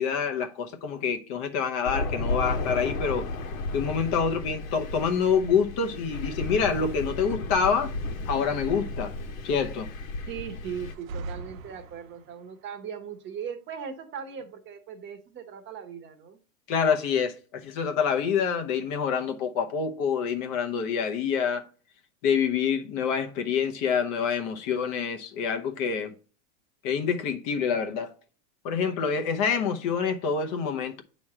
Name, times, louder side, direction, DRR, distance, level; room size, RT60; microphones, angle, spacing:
voice 1, 0.0-3.3 3.7-7.9 8.3-9.1 9.4-9.9 16.7-21.6 22.2-26.1 26.8-28.1 28.6-31.0, left 6 dB, 45° left, 1.0 m, -27 dB
Thunder, 1.9-10.9, left 2 dB, 80° left, 1.4 m, -33 dB
voice 2, 10.3-16.4, right 7 dB, 30° right, 1.0 m, -39 dB
sound 1, 10.8-12.5, right 3 dB, 85° right, 0.8 m, -40 dB
8.5 x 3.2 x 5.8 m
supercardioid pair, 135°, 40 cm